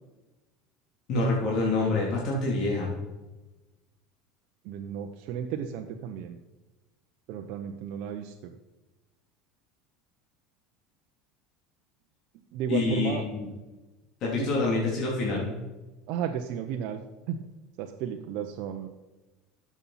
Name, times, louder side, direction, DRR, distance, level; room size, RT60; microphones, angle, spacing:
voice 1, 1.1-3.0 12.7-13.5 14.2-15.5, left 3 dB, 55° left, -4 dB, 3.1 m, -27 dB
voice 2, 4.6-6.4 7.3-8.5 12.5-13.3 14.3-14.7 16.1-17.0 17.3-17.4 17.8-18.9, right 9 dB, 65° right, 4 dB, 0.8 m, -33 dB
12.0 x 7.3 x 4.3 m, 1.1 s
hypercardioid pair, 85°, 0 cm